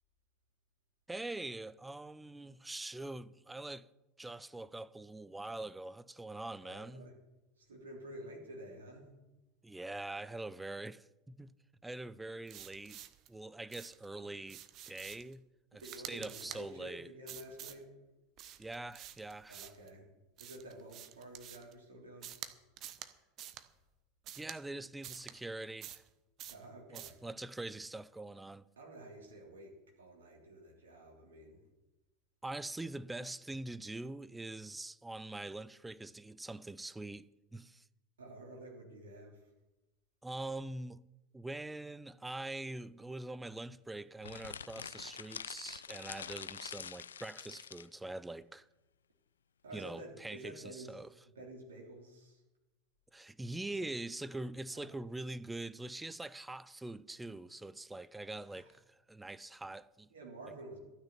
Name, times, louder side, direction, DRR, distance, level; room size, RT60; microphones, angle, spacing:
voice 1, 1.1-3.9 4.2-7.0 9.6-11.5 11.8-13.0 13.3-15.4 15.7-15.8 16.1-17.1 18.6-19.6 24.4-26.0 26.9-28.7 32.4-37.8 40.2-41.0 41.3-48.7 49.7-51.1 53.1-60.1, right 2 dB, 10° right, 0.5 m, -44 dB
voice 2, 6.6-7.2 7.6-9.1 14.2-14.4 15.8-17.9 19.5-20.0 20.4-22.3 26.5-27.2 28.8-31.6 32.8-32.9 38.2-39.5 49.6-51.0 51.3-52.4 53.7-53.9 54.7-54.9 58.5-58.7 60.1-60.8, right 1 dB, 70° right, 3.1 m, -50 dB
sound 1, 12.5-13.3 13.7-14.1 14.5-15.3 15.8-16.6 17.3-17.8 18.4-19.9 20.4-21.7 22.2-22.5 22.8-23.1 23.4-23.6 24.2-24.6 25.0-25.3 25.8-26.1 26.4-26.6 26.9-27.2, right 11 dB, 40° right, 0.9 m, -48 dB
sound 2, 44.2-47.9, left 8 dB, 75° left, 0.3 m, -46 dB
12.5 x 6.4 x 9.1 m
figure-of-eight pair, 80°, 0 cm